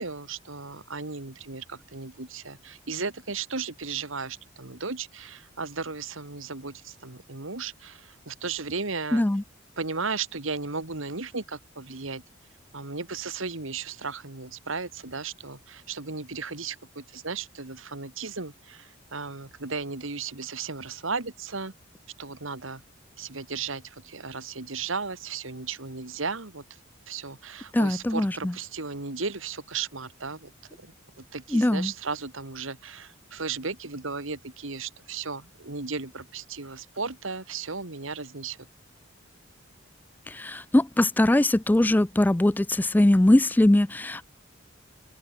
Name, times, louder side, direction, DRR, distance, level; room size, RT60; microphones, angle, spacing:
voice 1, 0.0-9.2 9.8-12.2 12.7-21.7 22.2-22.8 23.2-26.8 27.1-30.5 30.8-38.7, right 4 dB, 70° right, 2.1 m, -35 dB
voice 2, 9.1-9.4 27.7-28.5 31.5-31.9 40.3-44.2, left 1 dB, 10° left, 0.3 m, -21 dB
open air
head